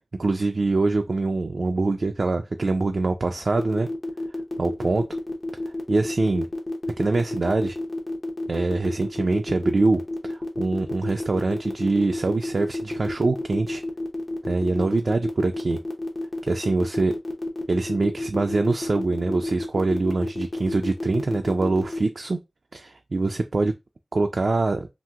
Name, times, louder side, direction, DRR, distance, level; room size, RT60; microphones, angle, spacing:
voice 1, 0.2-3.9 4.6-5.0 5.9-6.4 7.0-7.8 8.5-10.0 10.3-13.8 14.4-15.8 16.4-17.1 17.7-22.4 22.7-23.7 24.1-24.9, right 3 dB, 70° right, 0.3 m, -24 dB
sound 1, 3.6-22.0, left 2 dB, 55° left, 0.8 m, -30 dB
2.8 x 2.1 x 3.4 m
wide cardioid pair, 50°, 0 cm